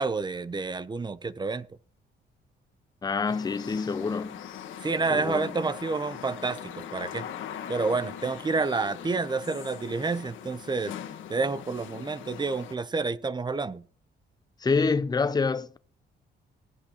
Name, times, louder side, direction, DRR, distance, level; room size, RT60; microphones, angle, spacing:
voice 1, 0.0-1.7 4.8-7.3 7.7-10.9 11.3-13.8, right 4 dB, 20° right, 0.6 m, -29 dB
voice 2, 3.0-4.4 5.1-5.5 14.6-15.8, left 4 dB, 20° left, 0.6 m, -27 dB
sound 1, 3.3-12.8, left 9 dB, 80° left, 1.5 m, -41 dB
19.5 x 8.2 x 2.9 m
cardioid pair, 90°, 20 cm